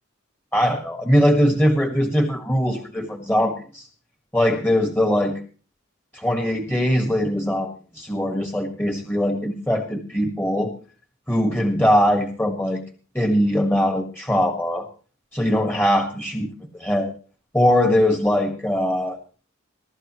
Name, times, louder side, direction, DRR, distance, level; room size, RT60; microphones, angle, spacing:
voice 1, 0.5-3.9 4.3-5.4 6.1-10.7 11.3-12.8 13.1-14.9 15.3-16.5 16.8-17.1 17.5-19.2, equal, 10° left, 3 dB, 1.6 m, -21 dB
23.0 x 13.0 x 3.1 m, 0.40 s
head